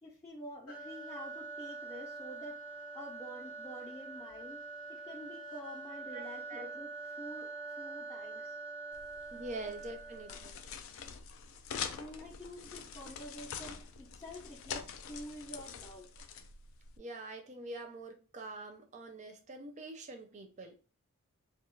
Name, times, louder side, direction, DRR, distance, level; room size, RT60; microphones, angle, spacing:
voice 1, 0.0-2.6 2.9-4.6 4.9-8.6 9.6-9.7 11.9-16.1, equal, 15° left, 0.6 m, -48 dB
sound 1, 0.7-10.6, right 3 dB, 80° left, 1.0 m, -45 dB
voice 2, 6.1-6.6 9.3-10.6 17.0-20.7, right 2 dB, 35° right, 0.5 m, -45 dB
sound 2, 8.9-17.0, left 7 dB, 60° left, 0.3 m, -45 dB
2.3 x 2.2 x 3.1 m
head